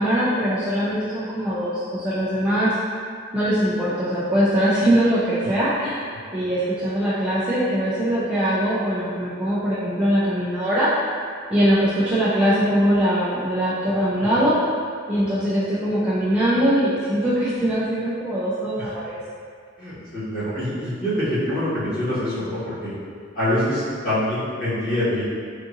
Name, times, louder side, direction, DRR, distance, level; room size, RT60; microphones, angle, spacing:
voice 1, 0.0-2.8 3.3-6.1 6.3-10.9 11.5-14.6 15.1-19.2, equal, 5° right, -11 dB, 0.4 m, -21 dB
voice 2, 13.9-14.4 15.1-15.2 18.8-18.9 19.8-22.9 23.3-25.2, left 1 dB, 50° left, -13 dB, 1.4 m, -25 dB
3.6 x 2.6 x 2.6 m, 2.1 s
head